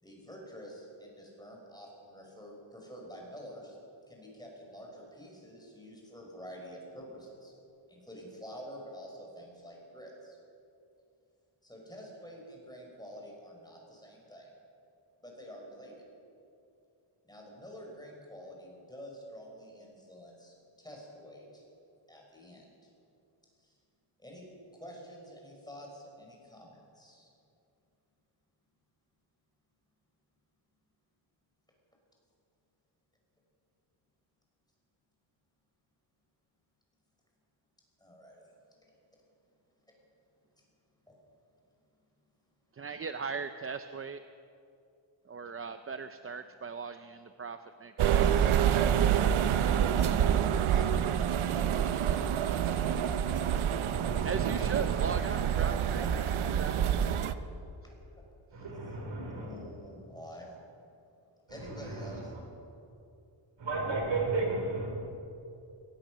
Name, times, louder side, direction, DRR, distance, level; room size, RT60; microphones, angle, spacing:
voice 1, 0.0-3.8 4.1-7.5 7.9-10.4 11.6-14.5 15.2-15.9 17.3-21.6 22.1-22.6 24.2-24.4 24.7-27.3 38.0-38.4 41.1-41.2 48.2-48.5 50.0-52.8 56.0-56.3 57.8-57.9 58.7-60.5 61.5-62.6, equal, 10° left, -1 dB, 5.6 m, -48 dB
voice 2, 42.7-44.2 45.3-48.7 54.2-56.7, right 5 dB, 30° right, 9 dB, 0.6 m, -39 dB
sound 1, 48.0-57.3, right 9 dB, 80° right, 0.9 m, -27 dB
voice 3, 53.9-55.0 58.5-59.5 61.5-62.3 63.6-64.9, right 3 dB, 65° right, 1 dB, 5.5 m, -34 dB
22.5 x 18.0 x 6.4 m, 2.6 s
wide cardioid pair, 135°, 48 cm